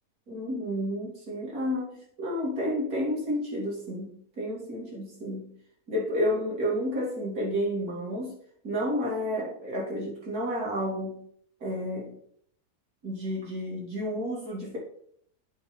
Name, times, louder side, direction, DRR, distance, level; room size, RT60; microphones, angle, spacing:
voice 1, 0.3-5.5 5.9-8.4 8.6-11.2 11.6-12.1 13.0-14.8, equal, 75° right, -4 dB, 2.9 m, -31 dB
7.8 x 3.5 x 5.2 m, 0.64 s
omnidirectional pair, 1.6 m